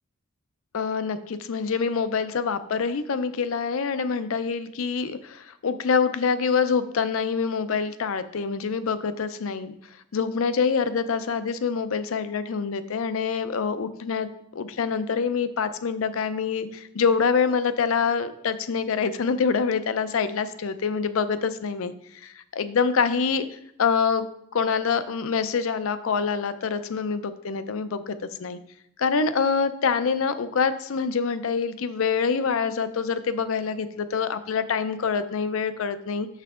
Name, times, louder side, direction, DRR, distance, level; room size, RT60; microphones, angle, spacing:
voice 1, 0.7-9.7 10.1-21.9 22.2-24.3 24.5-28.6 29.0-36.3, left 5 dB, 75° left, 12 dB, 0.5 m, -26 dB
6.7 x 5.7 x 3.7 m, 0.72 s
head